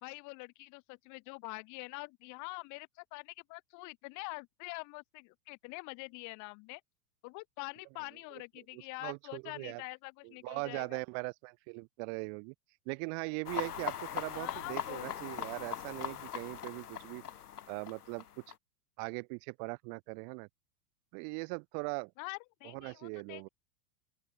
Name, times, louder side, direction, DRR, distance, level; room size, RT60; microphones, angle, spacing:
voice 1, 0.0-6.8 7.2-11.0 14.3-15.1 22.2-23.5, left 28 dB, 35° left, 2.0 m, -45 dB
voice 2, 8.7-9.8 10.4-12.5 12.9-17.2 17.7-18.5 19.0-20.5 21.1-22.1 22.6-23.5, right 40 dB or more, 35° right, 1.0 m, -40 dB
sound 1, 13.5-18.5, left 9 dB, 70° left, 1.6 m, -40 dB
open air
figure-of-eight pair, 95°, 48 cm